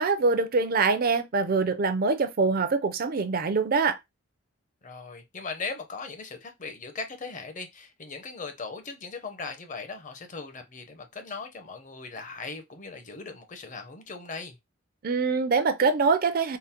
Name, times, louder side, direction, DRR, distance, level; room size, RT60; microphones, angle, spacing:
voice 1, 0.0-4.0 15.0-16.6, right 4 dB, 45° right, 0.5 m, -24 dB
voice 2, 4.8-14.6, left 4 dB, 35° left, 0.7 m, -39 dB
3.8 x 2.0 x 4.2 m
head